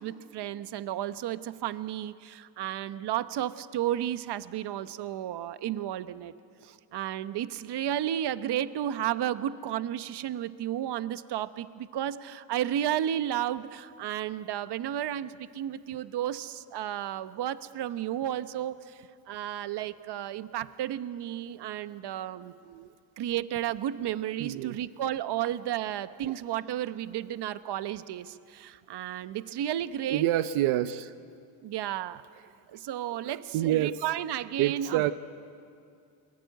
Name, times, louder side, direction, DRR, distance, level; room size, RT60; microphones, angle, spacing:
voice 1, 0.0-6.3 6.6-22.5 23.2-30.2 31.6-32.2 32.7-35.1, right 11 dB, 55° right, 12 dB, 1.1 m, -33 dB
voice 2, 24.4-24.8 26.2-26.3 30.1-31.1 33.3-34.0 34.6-35.1, right 13 dB, 75° right, 11 dB, 0.9 m, -28 dB
28.5 x 22.0 x 9.2 m, 2.4 s
cardioid pair, 95°, 49 cm